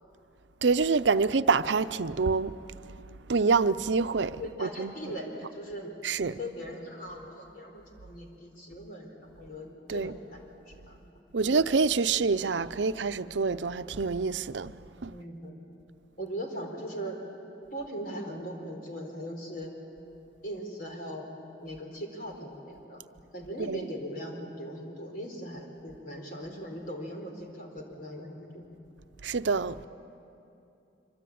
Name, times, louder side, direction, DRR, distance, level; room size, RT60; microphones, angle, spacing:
voice 1, 0.6-2.5 3.3-5.1 6.0-6.4 9.9-10.1 11.3-14.7 15.0-15.1 23.7-23.8 29.2-29.9, right 4 dB, 85° right, 0.6 m, -26 dB
voice 2, 4.4-11.5 15.1-15.6 16.2-17.3 17.7-19.8 20.4-21.3 21.6-23.0 23.3-28.7, equal, 50° left, 4.0 m, -40 dB
25.5 x 25.0 x 8.6 m
head